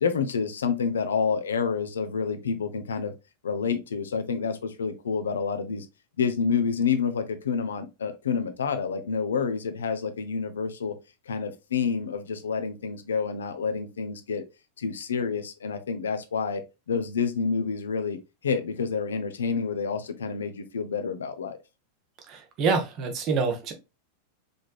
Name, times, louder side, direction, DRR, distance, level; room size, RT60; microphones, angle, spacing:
voice 1, 0.0-3.1 3.4-5.9 6.2-11.0 11.3-14.4 14.8-16.6 16.9-21.6, left 5 dB, 65° left, 0.6 m, -28 dB
voice 2, 22.3-23.7, right 4 dB, 35° right, 1.1 m, -26 dB
5.1 x 3.6 x 2.3 m
figure-of-eight pair, 90°, 0 cm